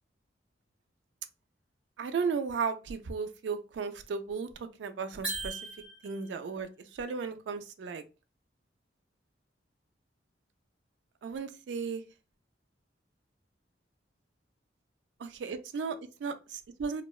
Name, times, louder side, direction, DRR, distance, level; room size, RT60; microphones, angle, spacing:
voice 1, 2.0-5.6 6.0-8.0 11.2-12.0 15.2-17.0, right 5 dB, 65° right, 0.3 m, -35 dB
sound 1, 5.2-6.4, right 2 dB, 5° right, 0.5 m, -38 dB
2.8 x 2.1 x 2.3 m
head